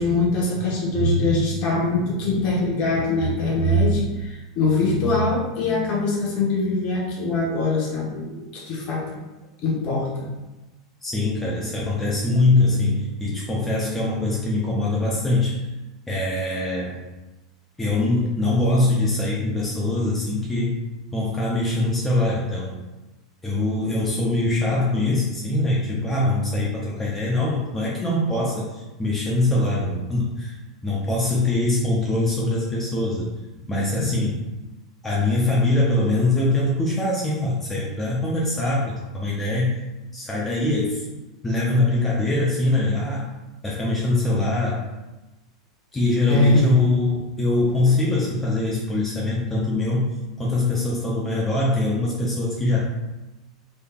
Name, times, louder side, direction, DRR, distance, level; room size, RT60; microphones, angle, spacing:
voice 1, 0.0-9.2 9.6-10.3 34.0-34.2 46.3-46.6, left 2 dB, 45° left, -3 dB, 1.1 m, -22 dB
voice 2, 11.0-15.7 16.1-17.1 17.8-20.8 21.1-22.8 23.4-30.5 30.8-33.3 33.7-34.4 35.0-39.7 40.1-41.0 41.4-43.3 43.6-44.9 45.9-50.0 50.4-52.8, left 2 dB, 10° left, -5 dB, 0.7 m, -23 dB
3.4 x 3.2 x 2.3 m, 1.1 s
figure-of-eight pair, 85°, 3 cm